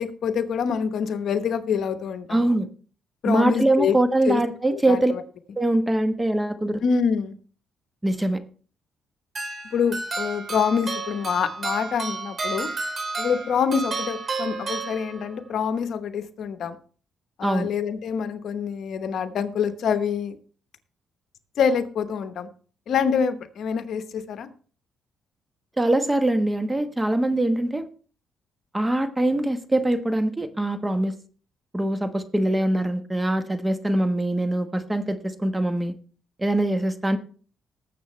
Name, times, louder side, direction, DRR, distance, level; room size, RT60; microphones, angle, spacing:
voice 1, 0.0-2.6 3.2-4.0 4.2-4.4 4.7-5.2 6.8-7.3 9.6-12.7 13.2-16.8 17.4-20.4 21.6-22.5 22.9-24.5, left 7 dB, 65° left, 10 dB, 1.0 m, -26 dB
voice 2, 2.3-2.7 3.3-5.1 5.6-6.8 8.0-8.4 17.4-17.7 25.8-27.9 28.7-31.1 31.7-35.9 36.4-37.2, right 1 dB, 15° right, 9 dB, 1.2 m, -23 dB
sound 1, 9.4-15.5, right 3 dB, 40° right, 3.5 m, -31 dB
19.0 x 7.5 x 3.2 m, 0.41 s
cardioid pair, 90°, 0 cm